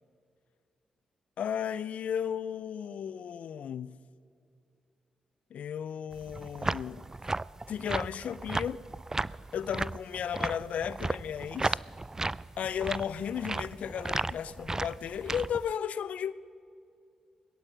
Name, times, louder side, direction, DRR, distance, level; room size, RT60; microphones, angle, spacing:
voice 1, 1.4-4.0 5.5-7.1 7.7-8.8 9.5-11.8 12.6-16.3, left 8 dB, 70° left, 0.5 m, -34 dB
sound 1, 6.1-15.7, right 2 dB, 25° right, 0.3 m, -35 dB
21.5 x 11.0 x 6.1 m
hypercardioid pair, 40°, 2 cm